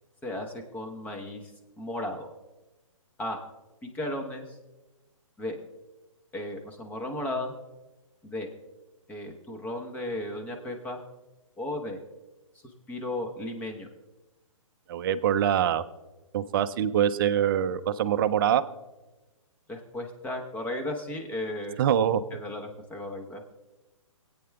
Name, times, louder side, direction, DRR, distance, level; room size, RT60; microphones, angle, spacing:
voice 1, 0.2-1.5 1.8-2.3 3.2-3.4 3.8-4.6 5.4-5.6 6.3-7.5 8.2-8.5 9.1-11.0 11.6-12.0 12.9-13.9 19.7-21.8 22.3-23.4, left 1 dB, 10° left, 2 dB, 1.0 m, -35 dB
voice 2, 14.9-15.8 16.3-18.6 21.8-22.2, right 9 dB, 40° right, 13 dB, 0.5 m, -24 dB
21.0 x 8.7 x 2.3 m, 1.1 s
hypercardioid pair, 130°, 17 cm